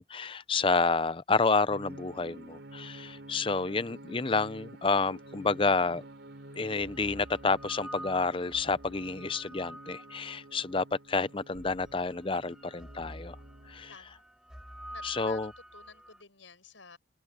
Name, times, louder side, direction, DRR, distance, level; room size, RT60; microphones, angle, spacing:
voice 1, 0.0-6.0 6.5-13.4 13.7-13.9 15.0-15.5, left 4 dB, 25° left, 0.6 m, -29 dB
sound 1, 1.7-14.0, right 1 dB, 65° right, 4.1 m, -50 dB
sound 2, 6.5-10.8 11.5-16.2, equal, 5° right, 4.5 m, -48 dB
voice 2, 13.9-14.3 14.9-15.4 15.7-17.0, left 5 dB, 85° left, 7.1 m, -52 dB
open air
head